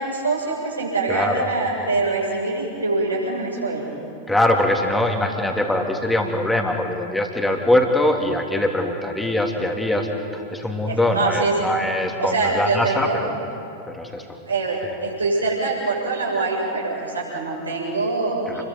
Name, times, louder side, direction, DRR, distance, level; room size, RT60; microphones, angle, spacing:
voice 1, 0.0-3.9 10.8-11.6 12.2-13.2 14.5-18.6, right 3 dB, 80° right, -3 dB, 7.1 m, -24 dB
voice 2, 1.1-1.5 4.3-10.1 10.3-13.4 13.9-14.4 18.5-18.6, left 1 dB, 5° left, 2 dB, 3.0 m, -22 dB
29.5 x 22.5 x 5.4 m, 2.6 s
figure-of-eight pair, 90°, 0 cm